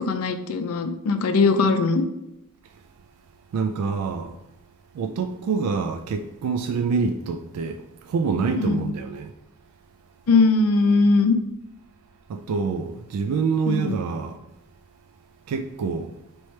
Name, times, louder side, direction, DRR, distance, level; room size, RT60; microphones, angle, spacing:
voice 1, 0.0-2.0 8.6-8.9 10.3-11.4 13.7-14.0, left 3 dB, 70° left, 0.4 m, -20 dB
voice 2, 3.5-4.3 4.9-9.3 12.3-14.4 15.5-16.1, right 5 dB, 85° right, 0.3 m, -26 dB
3.2 x 3.0 x 4.3 m
head